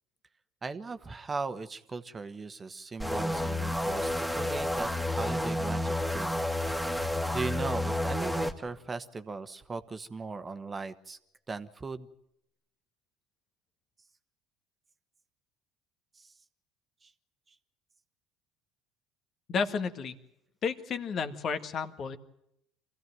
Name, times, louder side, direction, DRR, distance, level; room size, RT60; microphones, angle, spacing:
voice 1, 0.6-6.4 6.9-11.2 11.5-12.1 16.2-16.3 17.0-17.1, right 4 dB, 25° right, 11 dB, 1.3 m, -38 dB
sound 1, 3.0-8.5, left 1 dB, 5° left, 2.1 m, -30 dB
voice 2, 19.5-20.1 20.6-22.2, left 5 dB, 50° left, 9 dB, 1.8 m, -32 dB
25.5 x 15.5 x 9.3 m, 0.79 s
hypercardioid pair, 65°, 0 cm